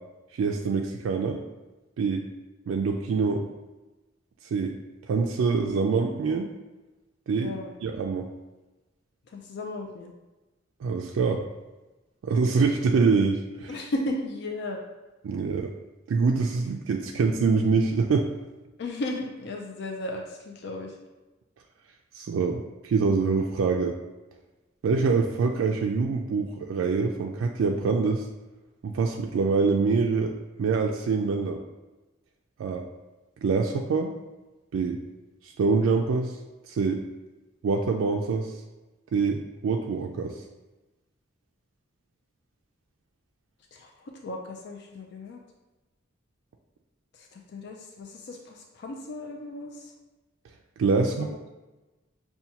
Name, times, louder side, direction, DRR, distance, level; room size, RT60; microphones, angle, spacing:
voice 1, 0.3-1.4 2.0-2.2 2.7-3.4 4.5-4.7 5.1-6.5 7.3-7.5 7.8-8.3 10.8-11.4 12.2-13.9 15.2-15.7 16.1-18.3 22.1-23.9 24.8-28.2 28.8-30.3 30.6-31.6 32.6-32.8 33.4-34.1 34.7-35.0 35.4-36.4 36.7-37.0 37.6-38.5 39.1-40.3 50.8-51.3, right 4 dB, 90° right, 1 dB, 0.3 m, -25 dB
voice 2, 7.3-7.7 9.3-10.1 13.7-14.8 18.8-20.9 43.7-43.9 44.2-45.4 47.2-49.9 51.0-51.4, left 2 dB, 55° left, 1 dB, 0.4 m, -35 dB
5.6 x 2.2 x 2.8 m, 1.1 s
head